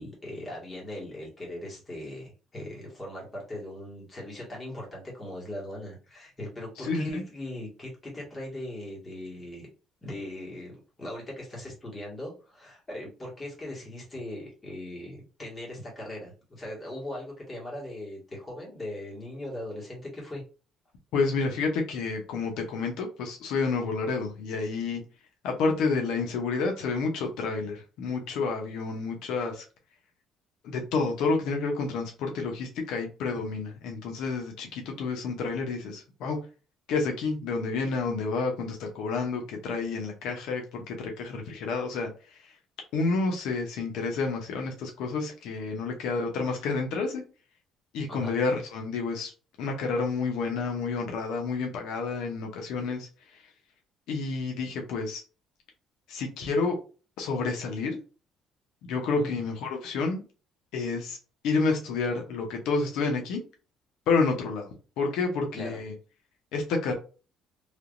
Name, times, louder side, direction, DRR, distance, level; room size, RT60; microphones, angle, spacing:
voice 1, 0.0-9.7 10.0-20.4 48.1-48.3 58.9-59.3 65.5-65.8, left 1 dB, 20° left, 1.7 m, -39 dB
voice 2, 6.8-7.2 21.1-25.0 25.4-29.6 30.6-36.4 36.9-42.5 42.9-47.2 47.9-49.3 49.6-53.1 54.1-55.2 56.1-56.8 57.2-58.0 58.8-60.2 60.7-61.2 61.4-63.4 64.1-64.7 65.0-65.9 66.5-66.9, left 4 dB, 80° left, 0.8 m, -29 dB
3.4 x 2.9 x 2.5 m
cardioid pair, 130°, 0 cm